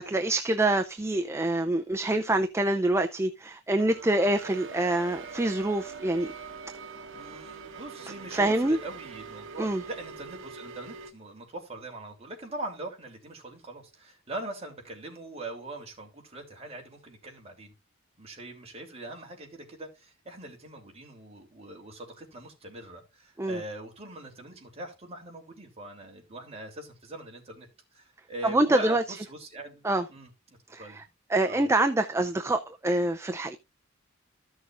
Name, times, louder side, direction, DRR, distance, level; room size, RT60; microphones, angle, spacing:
voice 1, 0.0-6.3 8.3-8.8 9.6-9.8 23.4-23.6 28.4-29.0 29.8-30.0 30.7-31.0 31.3-33.6, right 1 dB, 15° right, 0.5 m, -26 dB
sound 1, 3.8-11.1, right 5 dB, 65° right, 1.2 m, -43 dB
voice 2, 7.1-17.7 18.2-29.8 30.1-31.0 31.4-31.7, right 2 dB, 30° right, 3.1 m, -42 dB
14.0 x 6.4 x 2.5 m
head